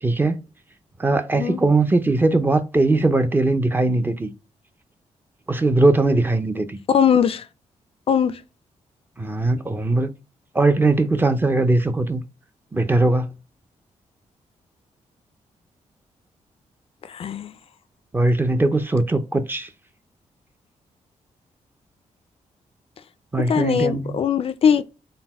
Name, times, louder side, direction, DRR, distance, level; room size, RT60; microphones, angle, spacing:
voice 1, 0.0-0.4 1.0-4.3 5.5-6.8 9.2-10.1 10.5-12.2 12.7-13.3 18.1-19.7 23.3-24.2, right 2 dB, 15° right, 0.5 m, -20 dB
voice 2, 6.9-7.5 8.1-8.4 17.0-17.5 23.4-24.8, left 7 dB, 50° left, 0.4 m, -20 dB
4.0 x 2.1 x 4.1 m
cardioid pair, 110°, 13 cm